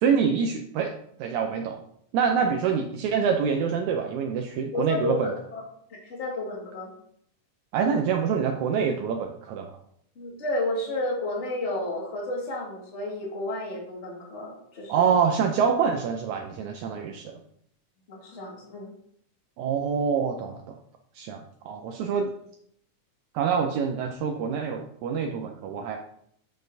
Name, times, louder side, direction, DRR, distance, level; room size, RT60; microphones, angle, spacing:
voice 1, 0.0-0.9 1.2-1.8 2.1-5.3 7.7-9.7 14.9-17.4 19.6-20.8 21.2-22.3 23.3-26.0, right 6 dB, 80° right, 3 dB, 1.9 m, -26 dB
voice 2, 4.7-5.6 5.9-6.9 10.2-15.1 18.1-18.9, left 1 dB, 25° left, -3 dB, 1.7 m, -31 dB
8.2 x 6.6 x 2.7 m, 0.68 s
omnidirectional pair, 3.6 m